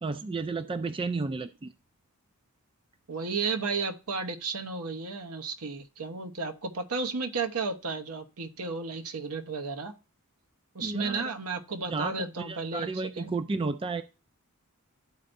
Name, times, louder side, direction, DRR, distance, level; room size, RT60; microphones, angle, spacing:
voice 1, 0.0-1.7 10.8-11.3 11.9-14.0, right 3 dB, 25° right, 0.3 m, -32 dB
voice 2, 3.1-9.9 10.7-13.3, right 4 dB, 80° right, 1.0 m, -33 dB
12.5 x 4.4 x 2.6 m
head